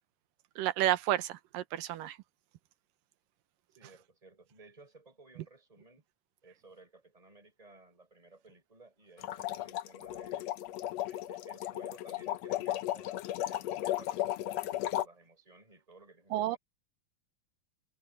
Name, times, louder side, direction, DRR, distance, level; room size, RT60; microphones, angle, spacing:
voice 1, 0.6-2.2 16.3-16.6, right 13 dB, 75° right, 2.6 m, -31 dB
voice 2, 3.7-6.1 6.4-10.5 11.0-16.6, right 3 dB, 10° right, 7.3 m, -58 dB
sound 1, 9.2-15.0, left 13 dB, 90° left, 1.4 m, -35 dB
omnidirectional pair, 4.1 m